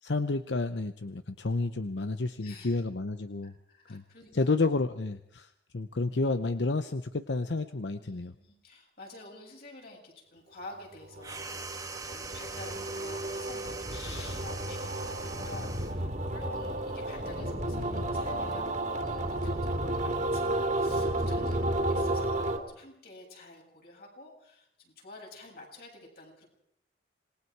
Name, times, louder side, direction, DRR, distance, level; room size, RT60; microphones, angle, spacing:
voice 1, 0.0-3.5 3.9-4.0 4.3-8.3 13.9-14.4, left 3 dB, 90° left, 10 dB, 0.8 m, -31 dB
voice 2, 2.4-2.8 3.4-4.7 8.0-11.7 12.0-18.7 19.0-26.5, left 2 dB, 60° left, 0 dB, 7.7 m, -50 dB
sound 1, 11.0-22.6, right 1 dB, 45° right, 2.5 m, -32 dB
sound 2, 11.2-16.0, right 4 dB, 20° right, 1.7 m, -42 dB
27.0 x 21.0 x 4.7 m, 0.74 s
head